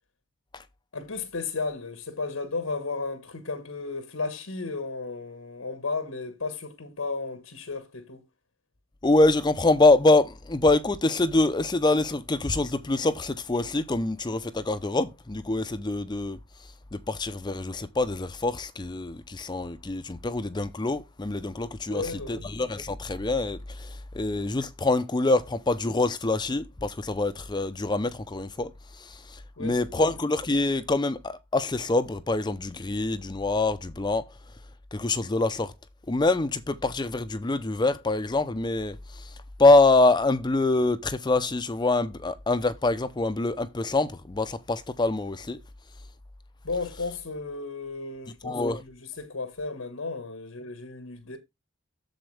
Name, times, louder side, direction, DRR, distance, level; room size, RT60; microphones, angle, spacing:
voice 1, 0.9-8.2 21.9-22.5 29.6-29.8 46.6-51.4, left 3 dB, 85° left, 1.4 m, -34 dB
voice 2, 9.0-16.4 16.9-34.2 34.9-35.7 36.1-45.6 48.4-48.8, left 2 dB, 20° left, 0.5 m, -25 dB
7.7 x 7.1 x 3.2 m
head